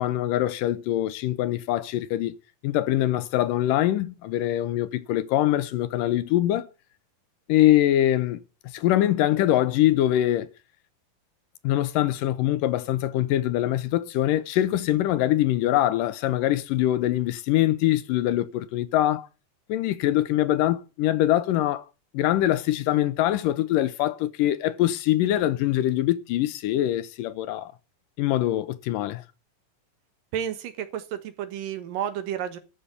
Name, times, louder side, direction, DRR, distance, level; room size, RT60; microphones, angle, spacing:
voice 1, 0.0-2.3 2.6-6.7 7.5-8.4 8.7-10.5 11.6-19.3 19.7-21.9 22.1-27.7 28.2-29.2, left 13 dB, 80° left, 2.3 m, -23 dB
voice 2, 30.3-32.6, right 9 dB, 75° right, 3.0 m, -31 dB
13.0 x 6.7 x 8.2 m
omnidirectional pair, 4.1 m